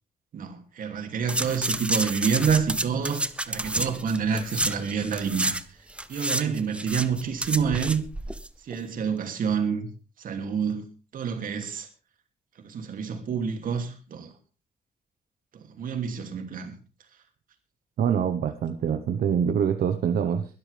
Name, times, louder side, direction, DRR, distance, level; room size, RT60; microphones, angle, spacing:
voice 1, 0.3-5.5 6.1-8.0 8.7-9.9 10.2-10.9 11.1-11.9 12.6-14.3 15.8-16.7, right 6 dB, 65° right, 2.7 m, -28 dB
sound 1, 1.3-5.6 5.9-8.5 8.7-8.8, right 1 dB, 5° right, 0.6 m, -30 dB
voice 2, 18.0-20.5, right 8 dB, 85° right, 1.2 m, -25 dB
21.5 x 12.5 x 3.5 m
wide cardioid pair, 170°, 15 cm